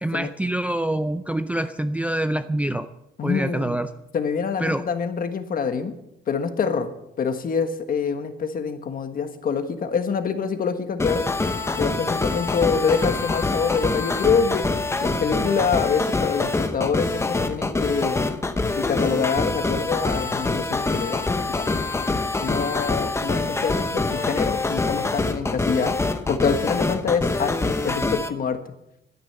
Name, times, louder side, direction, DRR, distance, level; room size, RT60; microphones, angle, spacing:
voice 1, 0.0-2.9 3.2-3.9 4.6-4.8, right 1 dB, 5° right, 9 dB, 0.4 m, -25 dB
voice 2, 3.2-3.8 4.1-5.9 6.3-6.9 7.2-11.3 11.8-14.7 15.0-18.2 18.8-21.8 22.4-26.0 26.3-28.6, left 6 dB, 45° left, 8 dB, 1.4 m, -25 dB
sound 1, 11.0-28.3, left 3 dB, 15° left, 0.9 m, -25 dB
12.5 x 10.0 x 8.0 m, 0.83 s
cardioid pair, 160°, 20 cm